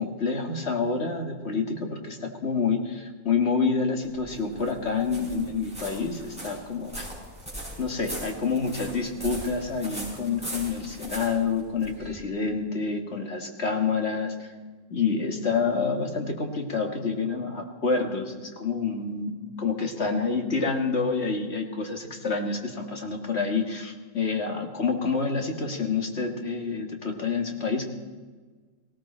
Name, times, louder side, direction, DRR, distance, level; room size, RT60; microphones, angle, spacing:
voice 1, 0.0-7.1 7.8-14.5 14.9-27.8, left 4 dB, 40° left, 3 dB, 1.9 m, -28 dB
sound 1, 4.0-12.2, right 1 dB, 5° right, 5.6 m, -40 dB
18.5 x 17.5 x 4.3 m, 1.4 s
omnidirectional pair, 1.7 m